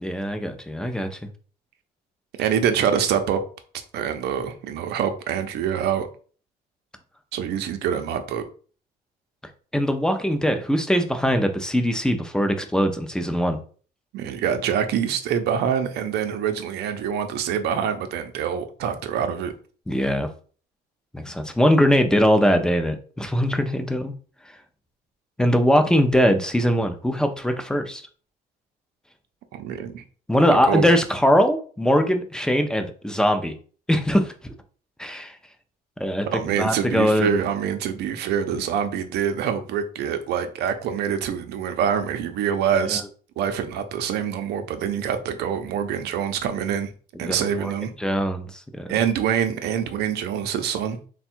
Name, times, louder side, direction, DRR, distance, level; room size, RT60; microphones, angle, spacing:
voice 1, 0.0-1.1 9.7-13.6 19.9-20.3 21.1-24.1 25.4-28.0 30.3-33.5 33.9-34.3 35.0-35.3 36.0-36.3 36.6-37.3 42.9-43.0 47.2-47.7 48.0-48.5 48.7-48.9, equal, 5° left, 0.6 m, -21 dB
voice 2, 2.4-3.4 3.9-6.1 7.3-8.5 14.1-19.5 29.5-30.0 30.5-30.9 36.3-43.0 43.4-46.9 47.2-47.9 48.9-51.0, right 8 dB, 75° right, 0.6 m, -25 dB
3.5 x 2.3 x 4.3 m
cardioid pair, 110°, 17 cm